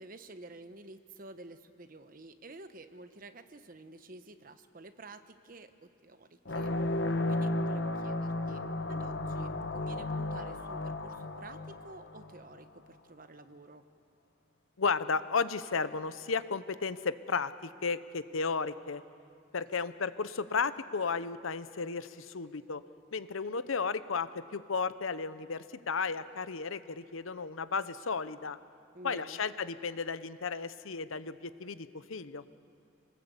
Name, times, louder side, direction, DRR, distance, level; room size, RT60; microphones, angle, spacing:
voice 1, 0.0-6.7 7.3-13.8 28.9-29.4, right 2 dB, 45° right, 10 dB, 1.0 m, -50 dB
sound 1, 6.4-12.6, left 2 dB, 60° left, 1.1 m, -34 dB
voice 2, 14.8-19.0 19.5-22.8 23.1-28.6 29.0-32.4, left 5 dB, 85° left, 13 dB, 0.8 m, -34 dB
26.5 x 19.5 x 8.2 m, 2.4 s
head